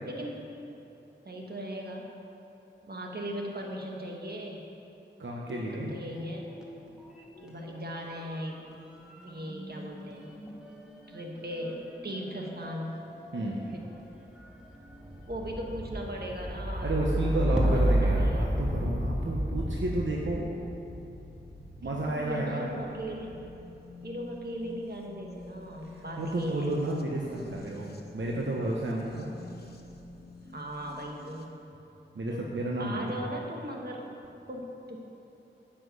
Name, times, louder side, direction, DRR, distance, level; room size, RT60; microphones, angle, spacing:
voice 1, 0.1-0.4 1.3-2.1 2.8-4.6 5.5-5.6 5.9-6.5 7.4-8.6 9.2-10.3 11.1-13.1 13.4-13.8 15.3-17.0 17.5-18.5 21.8-23.3 24.0-26.7 30.5-31.5 32.3-32.5 32.8-34.2 34.5-35.0, equal, 55° right, 0 dB, 1.7 m, -38 dB
voice 2, 5.2-6.0 13.3-13.6 16.8-20.5 21.8-22.6 25.9-29.3 32.1-33.2, right 1 dB, 75° right, -2 dB, 1.0 m, -32 dB
sound 1, 5.4-6.8 7.1-22.1 22.9-23.4, equal, 5° right, 1.7 m, -32 dB
sound 2, 20.3-31.5, left 2 dB, 55° left, 1.2 m, -49 dB
9.7 x 6.1 x 8.1 m, 2.9 s
cardioid pair, 50°, 19 cm